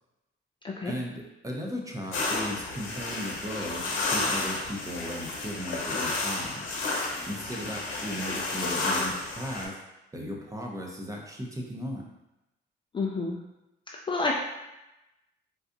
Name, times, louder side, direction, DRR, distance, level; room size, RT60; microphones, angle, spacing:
voice 1, 0.8-6.6 7.2-9.8 10.1-12.0, equal, 15° right, -1 dB, 0.6 m, -36 dB
sound 1, 2.1-9.7, left 3 dB, 75° left, 1.0 m, -31 dB
voice 2, 12.9-13.4 14.1-14.4, left 3 dB, 25° left, -2 dB, 0.4 m, -28 dB
4.0 x 2.4 x 2.5 m, 0.95 s
cardioid pair, 90°, 20 cm